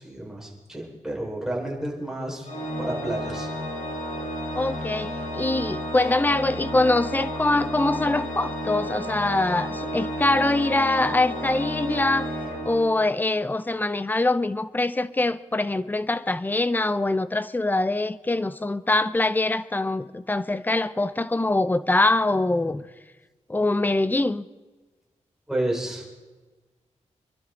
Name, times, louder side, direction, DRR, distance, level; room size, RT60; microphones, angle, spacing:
voice 1, 0.0-2.5 2.8-3.5 25.5-26.2, right 1 dB, 5° right, 4.9 m, -30 dB
Organ, 2.4-13.3, equal, 80° left, 4.0 m, -32 dB
voice 2, 4.6-12.3 12.6-22.8 23.5-24.5, left 2 dB, 15° left, 0.7 m, -23 dB
26.5 x 12.0 x 3.9 m
wide cardioid pair, 105°, 13 cm